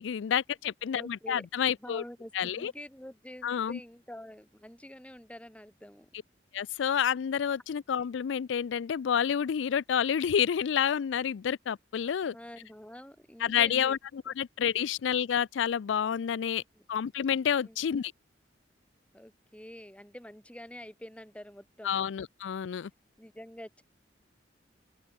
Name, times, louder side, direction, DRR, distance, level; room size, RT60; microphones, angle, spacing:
voice 1, 0.0-2.0 2.3-2.7 3.4-3.8 6.5-12.3 13.4-16.6 16.9-18.1 21.8-22.9, left 8 dB, 90° left, 0.4 m, -29 dB
voice 2, 0.9-1.5 1.8-6.1 12.3-14.0 14.3-14.4 14.8-14.9 16.4-16.8 17.6-17.8 19.1-22.0 23.2-23.8, left 1 dB, 5° left, 2.0 m, -47 dB
head